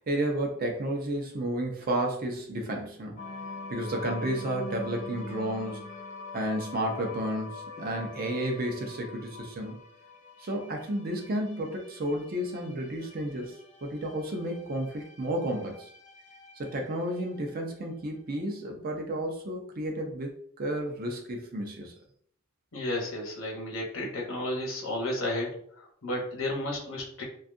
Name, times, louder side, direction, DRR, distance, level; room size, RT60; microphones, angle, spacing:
voice 1, 0.0-3.2 3.7-5.9 6.3-9.8 10.4-15.9 16.6-21.9, right 1 dB, 45° right, 2 dB, 0.5 m, -32 dB
sound 1, 3.2-17.6, left 3 dB, 35° left, 0.4 m, -45 dB
voice 2, 22.7-25.5 25.8-27.2, left 1 dB, 70° left, -1 dB, 0.9 m, -32 dB
2.6 x 2.3 x 2.5 m, 0.62 s
head